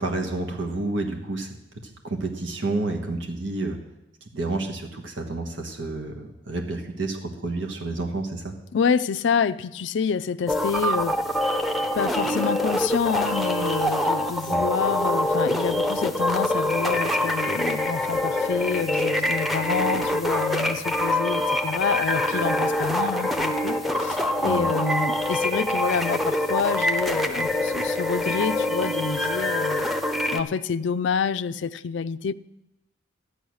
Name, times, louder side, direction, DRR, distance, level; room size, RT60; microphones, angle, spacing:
voice 1, 0.0-1.5 1.8-3.8 4.3-8.5 14.5-14.6 24.4-24.7, right 2 dB, 80° right, 1.4 m, -30 dB
voice 2, 8.7-11.2 11.9-29.9 30.3-32.3, left 6 dB, 70° left, 0.4 m, -27 dB
sound 1, 10.5-30.4, left 1 dB, ahead, 0.7 m, -25 dB
13.0 x 10.0 x 6.3 m
head